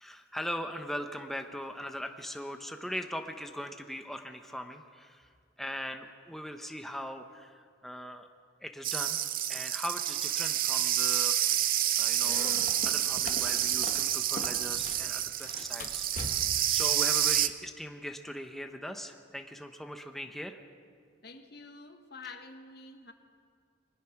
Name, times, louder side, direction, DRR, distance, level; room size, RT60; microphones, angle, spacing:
voice 1, 0.0-5.3 5.6-8.3 8.6-9.2 9.5-11.4 12.0-12.6 12.8-16.0 16.7-20.6 22.2-22.4, equal, ahead, 0.9 m, -40 dB
sound 1, 8.8-17.5, right 12 dB, 50° right, 0.7 m, -29 dB
sound 2, 12.2-15.1 15.4-16.7, left 2 dB, 45° left, 1.7 m, -42 dB
voice 2, 21.2-23.1, left 4 dB, 60° left, 1.5 m, -48 dB
23.5 x 19.5 x 5.9 m
head